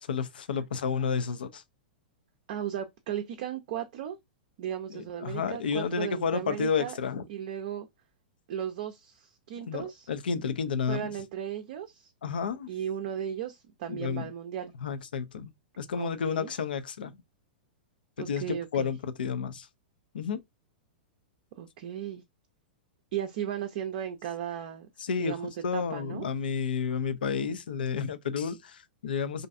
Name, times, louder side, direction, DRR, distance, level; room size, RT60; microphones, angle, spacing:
voice 1, 0.0-1.6 4.9-7.2 9.7-11.1 12.2-12.7 13.9-14.3 14.8-17.1 18.2-19.7 20.1-20.4 25.0-29.5, left 6 dB, 70° left, 0.4 m, -31 dB
voice 2, 2.5-4.2 4.6-7.0 7.3-7.9 8.5-10.1 10.9-12.1 12.7-14.7 16.0-16.5 18.2-18.9 21.6-22.2 23.1-24.9 25.2-26.2, right 10 dB, 50° right, 0.5 m, -36 dB
2.5 x 2.3 x 2.5 m
figure-of-eight pair, 105°, 5 cm